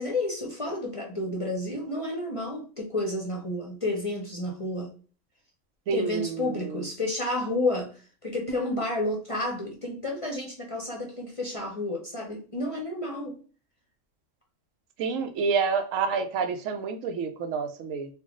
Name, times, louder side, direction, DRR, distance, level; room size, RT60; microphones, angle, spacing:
voice 1, 0.0-4.9 5.9-13.4, left 2 dB, 35° left, -1 dB, 0.5 m, -31 dB
voice 2, 5.9-6.8 15.0-18.1, right 5 dB, 85° right, 8 dB, 1.0 m, -28 dB
3.4 x 2.3 x 3.6 m, 0.39 s
omnidirectional pair, 1.3 m